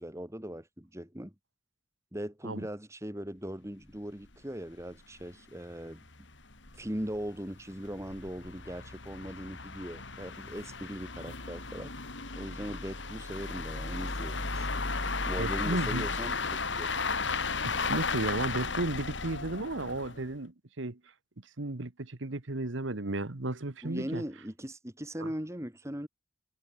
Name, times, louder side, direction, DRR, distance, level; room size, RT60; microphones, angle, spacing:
voice 1, 0.0-1.3 2.1-6.0 6.7-11.9 12.4-14.7 15.3-16.9 23.8-26.1, equal, 15° right, 2.4 m, -39 dB
sound 1, 3.9-4.0 4.2-4.3 4.8-4.9 5.2-5.3 5.9-20.3, left 4 dB, 65° left, 3.4 m, -35 dB
voice 2, 15.4-16.1 17.6-21.0 21.6-24.2 25.2-25.3, right 2 dB, 75° right, 1.4 m, -34 dB
head